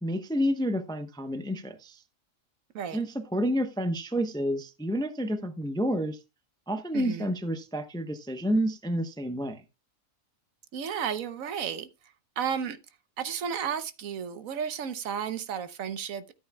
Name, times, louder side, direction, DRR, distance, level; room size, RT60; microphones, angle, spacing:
voice 1, 0.0-2.0 2.9-6.2 6.7-9.6, equal, 5° left, 0.5 m, -29 dB
voice 2, 6.9-7.3 10.7-11.9 12.4-12.8 13.2-16.3, right 7 dB, 75° right, 1.2 m, -33 dB
13.5 x 8.7 x 2.2 m
omnidirectional pair, 1.4 m